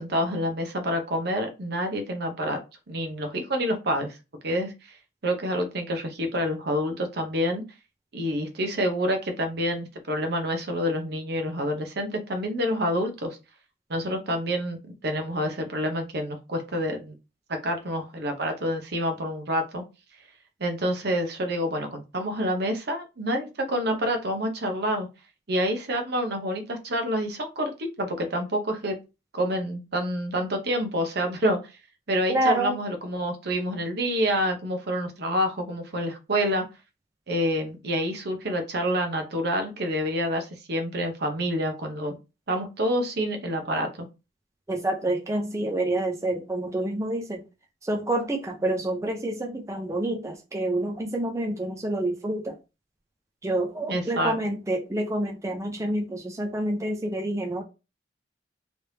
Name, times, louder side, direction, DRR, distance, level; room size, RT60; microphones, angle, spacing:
voice 1, 0.0-2.6 2.9-4.2 4.4-5.0 5.2-7.6 8.1-13.4 13.9-17.1 17.5-19.8 20.6-25.1 25.5-29.0 29.3-31.6 32.1-36.6 37.3-42.2 42.5-44.1 53.9-54.4, equal, 60° right, 0.8 m, -27 dB
voice 2, 32.3-32.8 44.7-47.4 47.8-52.6 53.4-57.6, right 1 dB, 15° right, 0.5 m, -28 dB
3.3 x 3.2 x 2.7 m
head